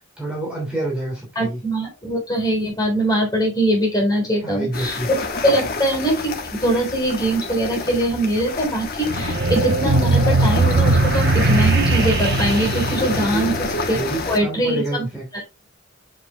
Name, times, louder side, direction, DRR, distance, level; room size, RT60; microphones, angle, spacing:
voice 1, 0.2-1.6 4.4-5.1 13.2-13.6 13.9-15.3, right 2 dB, 5° right, -3 dB, 2.8 m, -28 dB
voice 2, 1.4-14.0 14.3-15.1 15.3-15.4, right 1 dB, 20° left, -1 dB, 4.0 m, -22 dB
sound 1, 4.7-14.4, left 3 dB, 50° left, 1.3 m, -28 dB
sound 2, 9.1-14.0, right 2 dB, 55° right, 1.0 m, -19 dB
7.7 x 7.3 x 2.4 m, 0.25 s
head